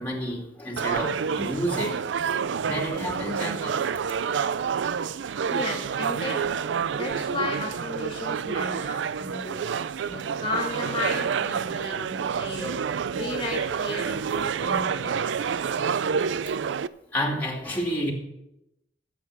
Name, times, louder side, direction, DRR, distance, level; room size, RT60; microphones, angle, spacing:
voice 1, 0.0-2.0 2.6-3.8 17.1-18.1, equal, 10° left, -2 dB, 2.4 m, -30 dB
sound 1, 0.8-16.9, right 6 dB, 85° right, 0.4 m, -28 dB
voice 2, 5.2-6.4 6.9-9.5 10.1-15.3, left 2 dB, 30° left, 0 dB, 2.1 m, -34 dB
14.0 x 7.5 x 6.6 m, 0.88 s
head